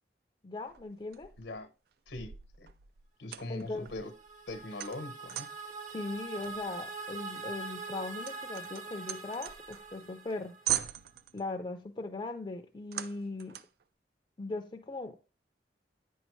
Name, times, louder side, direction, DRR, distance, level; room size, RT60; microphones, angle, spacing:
voice 1, 0.4-1.3 3.5-3.9 5.8-10.6 11.3-13.6 14.4-15.1, left 3 dB, 25° left, 0.5 m, -39 dB
sound 1, 0.7-1.6 2.1-5.7 6.4-10.0 10.3-10.4 10.7-11.5 12.9-13.8, right 12 dB, 60° right, 0.4 m, -40 dB
voice 2, 1.4-1.7 2.1-2.7 3.2-4.1 4.5-5.5, left 2 dB, 85° left, 0.9 m, -41 dB
sound 2, 3.7-10.9, right 4 dB, 45° right, 0.8 m, -43 dB
8.6 x 5.4 x 3.1 m
head